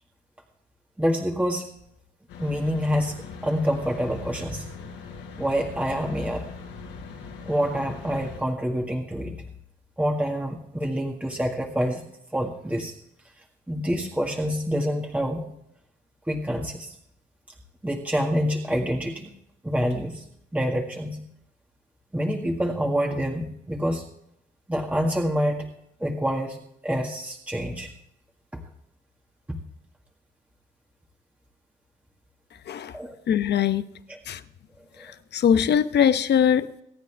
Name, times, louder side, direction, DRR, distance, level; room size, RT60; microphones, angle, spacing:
voice 1, 1.0-1.7 2.4-3.2 3.4-4.7 5.4-6.5 7.4-9.4 10.0-12.0 12.3-12.9 13.7-15.4 16.3-16.9 17.8-19.3 19.6-20.2 20.5-21.2 22.1-24.1 24.7-25.7 26.0-26.6 26.8-27.9 32.9-33.2 34.1-34.2, equal, 5° right, 0 dB, 1.8 m, -26 dB
sound 1, 2.3-8.4, left 5 dB, 90° left, 5.4 m, -41 dB
voice 2, 33.3-33.8 34.3-34.4 35.3-36.7, left 8 dB, 60° left, 12 dB, 0.9 m, -21 dB
24.5 x 9.2 x 3.4 m, 0.75 s
cardioid pair, 90°, 20 cm